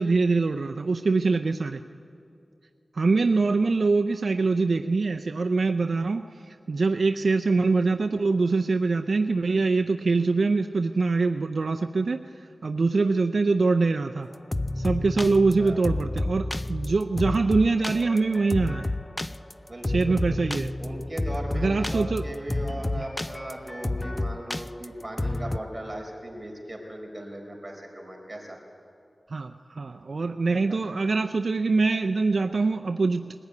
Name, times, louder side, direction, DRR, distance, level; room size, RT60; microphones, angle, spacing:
voice 1, 0.0-1.8 2.9-6.2 6.7-12.2 12.6-14.3 14.8-18.8 19.9-20.7 21.5-22.2 23.0-23.1 29.3-33.3, right 3 dB, 75° right, 7 dB, 0.5 m, -24 dB
sound 1, 14.3-25.6, left 2 dB, 25° left, 0.5 m, -30 dB
voice 2, 19.7-20.4 20.8-28.6 30.8-30.9, right 1 dB, 25° right, 0 dB, 4.8 m, -38 dB
21.0 x 15.0 x 9.5 m, 2.5 s
wide cardioid pair, 55°, 0 cm